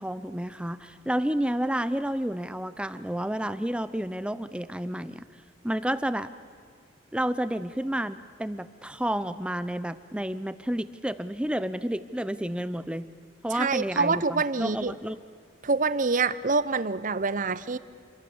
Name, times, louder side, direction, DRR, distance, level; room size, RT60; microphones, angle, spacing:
voice 1, 0.0-5.2 5.6-6.3 7.1-13.1 13.4-15.2, right 1 dB, 5° right, 13 dB, 0.6 m, -30 dB
voice 2, 13.5-14.9 15.6-17.8, right 4 dB, 40° right, 16 dB, 0.7 m, -26 dB
28.0 x 23.0 x 7.1 m, 2.2 s
head